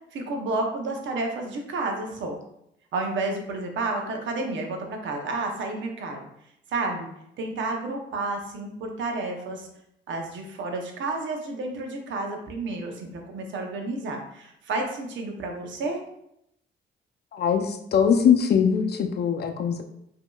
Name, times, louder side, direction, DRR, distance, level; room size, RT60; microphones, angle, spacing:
voice 1, 0.1-2.4 2.9-6.3 6.7-7.1 7.4-9.7 10.1-16.0, right 2 dB, 70° right, 2 dB, 0.8 m, -31 dB
voice 2, 17.3-19.8, left 7 dB, 55° left, 5 dB, 0.5 m, -22 dB
5.1 x 2.8 x 2.3 m, 0.78 s
cardioid pair, 90°, 20 cm